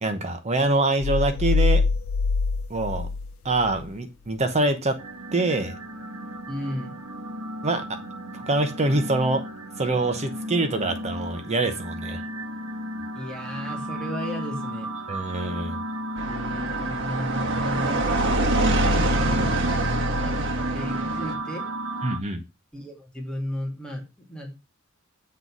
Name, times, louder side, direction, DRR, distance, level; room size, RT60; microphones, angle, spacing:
voice 1, 0.0-1.8 2.7-3.1 3.4-5.0 5.3-5.8 7.6-8.0 8.3-9.4 9.8-12.2 15.1-15.8 22.0-22.4, right 2 dB, 30° right, 7 dB, 0.9 m, -25 dB
sound 1, 1.0-3.9, left 4 dB, 65° left, 0.5 m, -24 dB
sound 2, 5.0-22.2, right 1 dB, 75° right, 1.4 m, -34 dB
voice 2, 6.5-7.0 13.2-14.9 16.3-18.3 18.6-19.5 20.0-21.7 22.7-24.0 24.3-24.6, equal, 5° left, -2 dB, 2.1 m, -34 dB
sound 3, 16.2-21.3, right 1 dB, 60° right, 1.5 m, -25 dB
7.7 x 4.0 x 6.1 m, 0.27 s
head